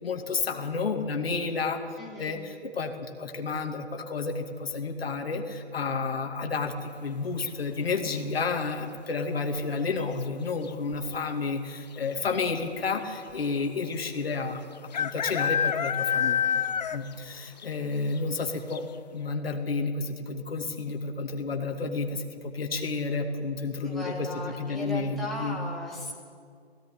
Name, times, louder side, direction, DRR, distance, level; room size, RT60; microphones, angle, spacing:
voice 1, 0.0-1.8 2.2-18.8 19.1-24.3 24.6-25.6, left 4 dB, 60° left, 3 dB, 2.4 m, -31 dB
voice 2, 2.0-2.4 23.8-26.1, left 2 dB, ahead, -6 dB, 3.0 m, -36 dB
sound 1, 7.4-7.9 9.7-10.1 10.3-10.4 10.6-11.2 11.9-12.0 12.3-12.4 13.9-14.0 14.9-17.2 17.6-17.7 18.2-18.3 18.7-18.8, left 8 dB, 40° left, 0.7 m, -28 dB
17.5 x 16.5 x 9.8 m, 2.1 s
figure-of-eight pair, 145°, 34 cm